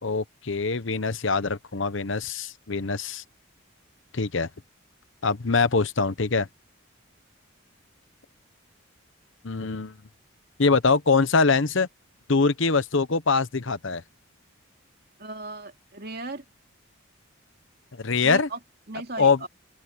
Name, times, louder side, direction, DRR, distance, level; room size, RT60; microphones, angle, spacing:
voice 1, 0.0-3.2 4.1-4.5 5.2-6.5 9.4-10.0 10.6-11.9 12.3-14.0 18.0-18.5 19.2-19.4, left 4 dB, 60° left, 0.9 m, -23 dB
voice 2, 15.2-16.4 18.2-18.6 18.9-19.5, right 2 dB, 45° right, 2.9 m, -36 dB
open air
head